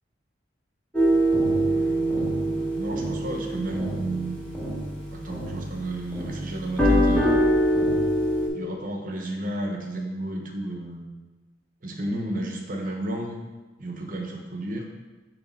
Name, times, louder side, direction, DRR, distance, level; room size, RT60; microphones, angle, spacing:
sound 1, 0.9-5.8 6.1-8.5, right 1 dB, 5° left, 1.3 m, -24 dB
voice 1, 1.7-4.5 5.1-7.3 8.5-11.1 11.8-13.4 13.8-14.8, right 1 dB, 45° right, 1 dB, 1.0 m, -33 dB
7.2 x 3.4 x 5.3 m, 1.2 s
head